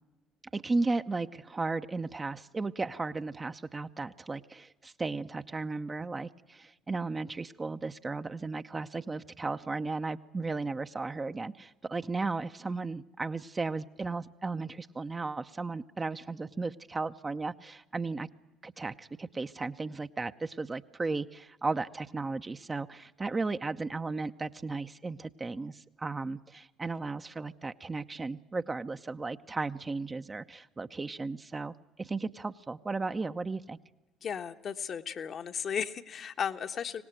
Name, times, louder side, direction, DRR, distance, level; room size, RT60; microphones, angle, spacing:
voice 1, 0.5-18.3 18.6-33.8, right 3 dB, 25° right, 9 dB, 0.9 m, -35 dB
voice 2, 34.2-37.0, left 7 dB, 45° left, 7 dB, 1.3 m, -35 dB
24.5 x 18.5 x 9.0 m, 1.1 s
hypercardioid pair, 55°, 0 cm